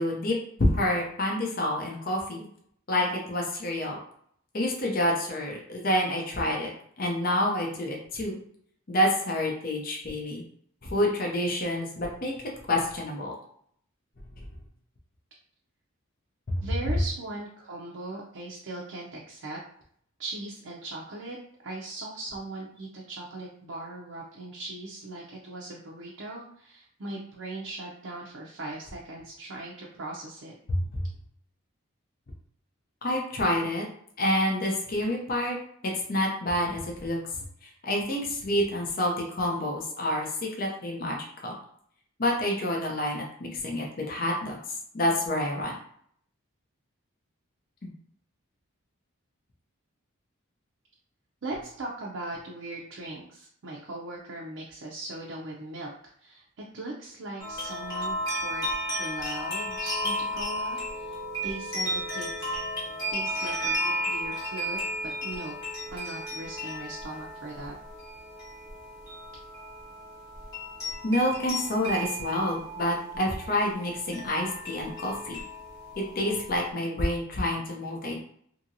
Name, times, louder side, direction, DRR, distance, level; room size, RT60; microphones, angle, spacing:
voice 1, 0.0-2.5 2.9-4.0 4.5-6.7 7.0-8.4 8.9-10.4 10.8-12.3 12.7-13.3 30.7-30.8 33.0-33.9 34.2-35.6 35.8-37.2 37.6-40.3 40.6-41.5 42.2-44.6 44.9-45.7 47.8-47.9 71.0-75.4 76.0-78.2, left 1 dB, 45° left, -1 dB, 0.6 m, -28 dB
voice 2, 16.6-19.6 20.2-21.4 21.6-30.5 51.4-55.9 56.2-58.2 58.4-61.2 61.4-62.5 63.1-65.6 65.9-67.8, right 2 dB, 65° right, -3 dB, 0.5 m, -39 dB
sound 1, 57.4-76.7, equal, 15° left, 1.0 m, -34 dB
2.9 x 2.7 x 2.6 m, 0.63 s
head